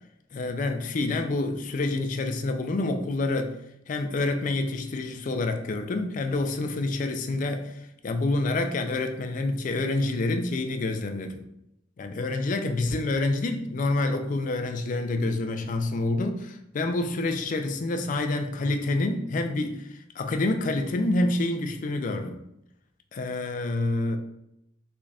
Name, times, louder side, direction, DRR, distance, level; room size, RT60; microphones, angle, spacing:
voice 1, 0.3-3.6 3.9-7.7 8.0-11.4 12.0-22.4 23.1-24.2, left 2 dB, 40° left, 6 dB, 0.4 m, -27 dB
3.8 x 3.2 x 2.3 m, 0.80 s
head